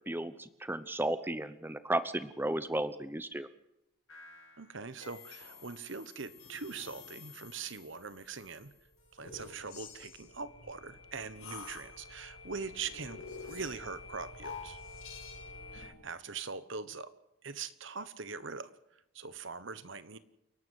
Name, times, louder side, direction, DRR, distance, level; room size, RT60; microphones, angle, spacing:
voice 1, 0.0-3.5, right 1 dB, 10° right, 13 dB, 0.9 m, -34 dB
sound 1, 4.1-15.9, left 4 dB, 80° left, 6.2 m, -49 dB
voice 2, 4.6-8.7 9.1-14.8 15.7-17.1 17.4-18.7 19.1-20.2, right 5 dB, 60° right, 14 dB, 1.2 m, -42 dB
29.0 x 12.0 x 8.1 m, 0.87 s
head